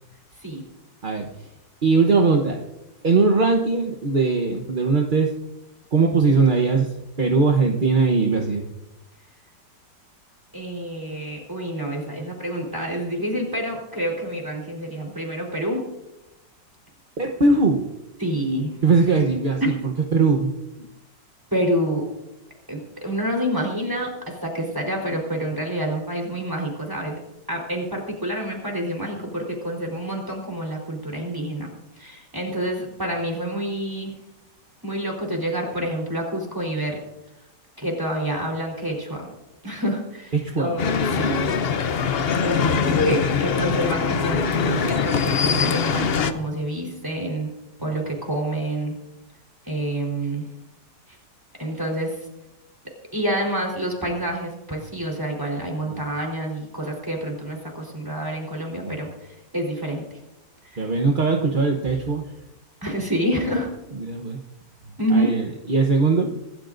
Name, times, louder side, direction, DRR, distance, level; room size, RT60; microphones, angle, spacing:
voice 1, 1.0-1.5 1.8-2.6 3.0-5.3 5.9-8.7 17.2-17.9 18.8-20.5 40.3-40.8 42.4-43.0 47.8-47.9 55.8-56.0 58.8-59.0 60.8-62.3 63.9-64.4 65.1-66.3, right 4 dB, 35° right, 2 dB, 0.9 m, -20 dB
voice 2, 10.5-15.8 18.2-18.8 20.6-20.7 21.5-22.0 22.7-27.2 27.5-34.1 34.8-37.0 37.8-39.3 39.6-41.9 42.4-47.5 47.8-48.9 49.6-50.4 51.6-52.2 53.1-60.0 60.6-60.9 62.8-63.7 65.0-65.3, right 1 dB, 10° right, 0 dB, 3.9 m, -28 dB
sound 1, 40.8-46.3, left 6 dB, 55° left, 0.7 m, -22 dB
25.5 x 13.0 x 2.6 m, 0.95 s
omnidirectional pair, 1.9 m